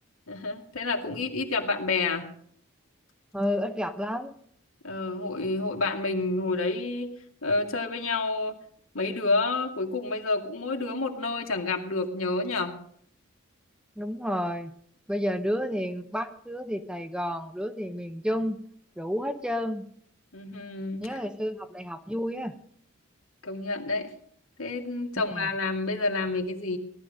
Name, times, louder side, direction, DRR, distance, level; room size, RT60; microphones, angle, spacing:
voice 1, 0.3-2.3 4.8-7.1 7.4-8.6 8.9-12.8 20.3-21.2 23.4-24.1 24.6-26.8, left 3 dB, 80° left, 2 dB, 2.5 m, -29 dB
voice 2, 3.3-4.3 14.0-14.7 15.1-18.6 19.0-19.9 21.0-22.6 25.3-25.5, equal, 5° right, 8 dB, 0.8 m, -31 dB
17.5 x 12.5 x 5.3 m, 0.62 s
head